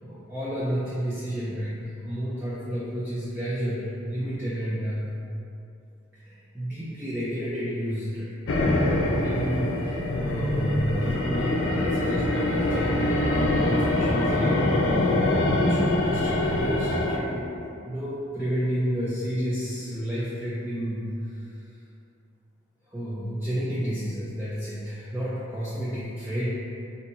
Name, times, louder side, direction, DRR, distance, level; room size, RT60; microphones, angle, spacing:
voice 1, 0.0-5.1 6.1-21.8 22.9-26.5, equal, 10° right, -10 dB, 0.4 m, -31 dB
sound 1, 8.5-17.2, left 1 dB, 90° left, 0.4 m, -24 dB
4.4 x 2.6 x 2.6 m, 2.7 s
head